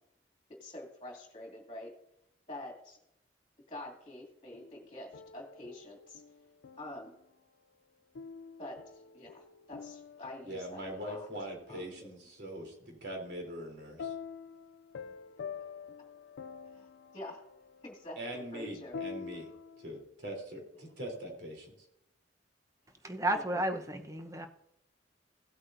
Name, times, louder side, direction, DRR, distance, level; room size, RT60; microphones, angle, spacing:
voice 1, 0.5-1.9 2.5-3.0 3.7-6.2 6.8-7.1 8.6-11.3 11.7-12.1 16.7-17.4 17.8-19.0 23.3-23.5, left 1 dB, 30° left, -1 dB, 2.4 m, -47 dB
sound 1, 4.5-7.2 8.2-11.5 14.0-20.0, left 6 dB, 80° left, 0.4 m, -47 dB
voice 2, 10.4-14.1 18.2-19.5 19.8-21.7, right 1 dB, 65° right, 1 dB, 3.5 m, -42 dB
voice 3, 23.0-24.5, right 1 dB, 15° right, 6 dB, 0.9 m, -32 dB
17.0 x 8.5 x 2.7 m, 0.80 s
head